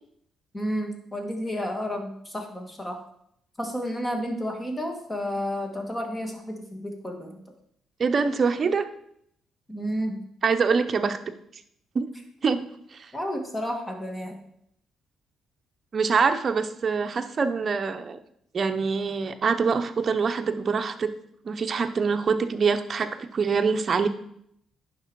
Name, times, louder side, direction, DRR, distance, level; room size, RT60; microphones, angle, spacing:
voice 1, 0.5-3.0 3.6-7.4 9.7-10.2 13.1-14.4, equal, 15° left, 3 dB, 1.9 m, -31 dB
voice 2, 8.0-8.9 10.4-11.2 11.9-12.1 12.4-12.7 12.9-13.1 15.9-18.2 18.5-21.1 21.4-24.1, right 5 dB, 45° right, 8 dB, 0.8 m, -24 dB
9.6 x 6.0 x 4.7 m, 0.72 s
cardioid pair, 90°, 0 cm